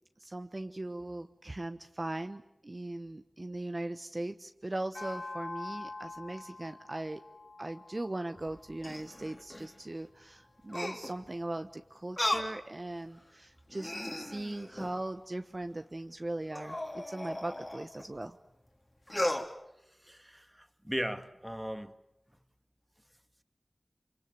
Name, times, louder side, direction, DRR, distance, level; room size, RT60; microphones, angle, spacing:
voice 1, 0.2-7.2 7.6-18.4, right 2 dB, 40° right, 8 dB, 1.1 m, -39 dB
sound 1, 4.9-9.5, left 2 dB, 65° left, 1.4 m, -45 dB
sound 2, 8.4-9.7 10.7-11.3 12.2-12.6 13.1-13.2 13.7-15.0 16.5-18.1 19.1-19.5, left 1 dB, 30° left, 3.5 m, -36 dB
voice 2, 20.0-21.9, equal, 10° right, 9 dB, 1.9 m, -37 dB
25.5 x 25.0 x 8.0 m, 0.85 s
cardioid pair, 40°, 0 cm